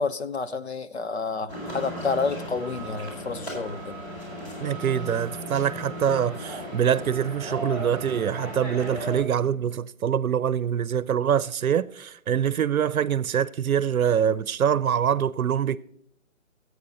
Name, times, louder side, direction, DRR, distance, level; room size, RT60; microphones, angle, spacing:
voice 1, 0.0-4.0, left 4 dB, 50° left, 0.7 m, -29 dB
sound 1, 1.5-9.2, equal, 20° left, 4.4 m, -36 dB
voice 2, 4.6-15.8, right 8 dB, 85° right, 0.7 m, -24 dB
13.5 x 8.5 x 4.1 m
hypercardioid pair, 175°, 41 cm